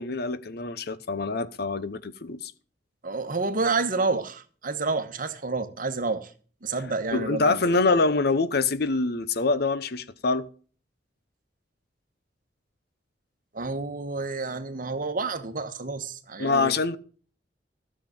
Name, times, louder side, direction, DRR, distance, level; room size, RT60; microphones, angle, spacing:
voice 1, 0.0-2.5 7.1-10.5 16.4-17.0, left 3 dB, 60° left, 0.8 m, -25 dB
voice 2, 3.0-6.3 6.6-8.0 13.5-16.7, right 3 dB, 50° right, 1.2 m, -29 dB
13.5 x 7.5 x 5.1 m
head